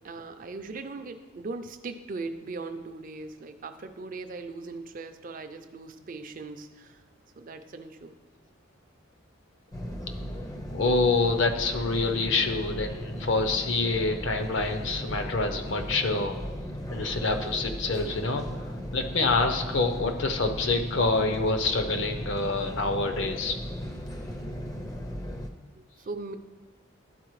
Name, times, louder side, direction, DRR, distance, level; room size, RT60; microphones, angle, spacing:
voice 1, 0.0-7.0 7.4-8.1 25.8-26.4, right 3 dB, 40° right, 8 dB, 0.4 m, -39 dB
sound 1, 9.7-25.5, equal, 15° left, 0.5 m, -36 dB
voice 2, 10.7-16.3 16.9-23.6, left 3 dB, 60° left, 6 dB, 0.7 m, -26 dB
12.0 x 4.2 x 3.1 m, 1.3 s
head